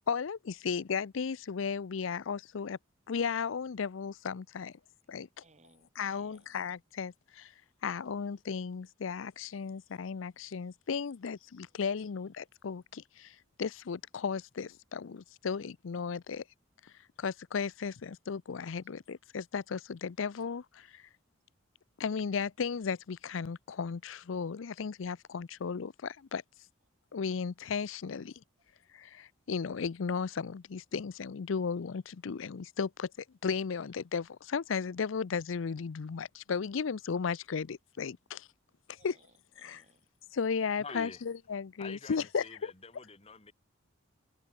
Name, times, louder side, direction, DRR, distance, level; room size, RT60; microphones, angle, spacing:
voice 1, 0.1-2.8 3.1-4.7 5.1-5.3 6.0-7.5 7.8-16.4 16.8-16.9 17.2-21.0 22.0-26.4 27.1-28.3 28.9-33.1 33.4-38.5 38.9-39.2 39.6-39.8 40.3-42.4, left 6 dB, 75° left, 0.5 m, -35 dB
voice 2, 5.4-6.5 39.0-40.1, right 3 dB, 35° right, 7.4 m, -64 dB
voice 3, 40.8-41.2 41.8-43.5, left 3 dB, 30° left, 3.5 m, -47 dB
head